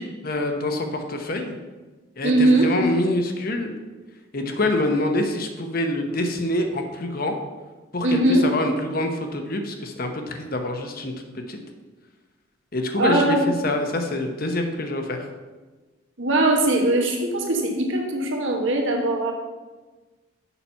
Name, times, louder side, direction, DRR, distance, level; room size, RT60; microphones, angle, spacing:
voice 1, 0.0-1.6 2.2-3.7 4.3-7.3 7.9-11.1 11.5-11.6 12.7-13.4 13.6-15.3, left 1 dB, 45° left, 5 dB, 0.9 m, -26 dB
voice 2, 2.2-2.7 8.0-8.4 13.0-13.4 16.2-19.3, right 1 dB, 65° right, 1 dB, 1.4 m, -20 dB
7.0 x 5.8 x 5.7 m, 1.3 s
head